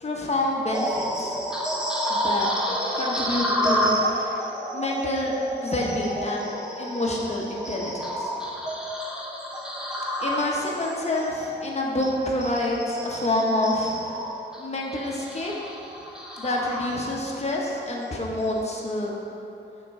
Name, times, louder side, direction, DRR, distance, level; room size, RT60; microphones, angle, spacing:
voice 1, 0.0-1.4 2.1-2.5 2.9-8.3 10.2-14.2 14.6-15.5 16.4-19.2, left 1 dB, 35° left, -3 dB, 1.0 m, -28 dB
sound 1, 0.7-17.4 17.8-18.0 18.6-18.8, equal, 5° right, 0.7 m, -30 dB
5.8 x 4.0 x 4.8 m, 2.9 s
wide cardioid pair, 100°, 19 cm